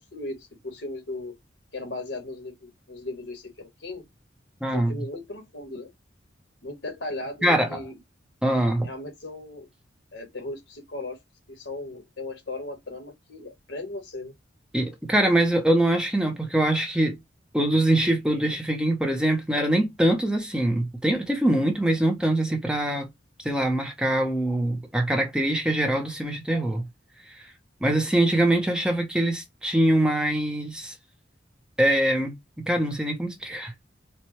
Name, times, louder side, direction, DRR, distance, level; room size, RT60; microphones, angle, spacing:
voice 1, 0.1-1.3 1.7-4.1 4.7-5.9 6.6-7.9 8.8-9.7 10.1-11.2 11.5-14.3, left 2 dB, 65° left, 1.2 m, -37 dB
voice 2, 4.6-4.9 7.4-7.8 8.4-8.9 14.7-17.2 17.5-23.1 23.4-26.9 27.3-27.5 27.8-30.9 31.8-32.3 32.7-33.7, right 1 dB, 5° right, 0.6 m, -23 dB
4.3 x 2.2 x 3.0 m
head